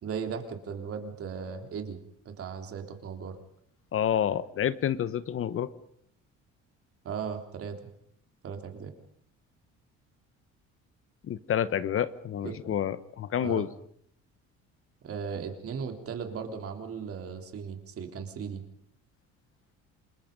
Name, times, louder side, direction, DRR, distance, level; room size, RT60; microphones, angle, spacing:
voice 1, 0.0-2.0 2.3-3.4 7.0-7.8 8.4-8.9 12.4-12.7 13.4-13.7 15.0-18.6, right 6 dB, 50° right, 5 dB, 3.5 m, -37 dB
voice 2, 3.9-5.7 11.3-13.7, left 9 dB, 50° left, 15 dB, 1.0 m, -29 dB
28.0 x 21.5 x 5.3 m, 0.66 s
cardioid pair, 115°, 29 cm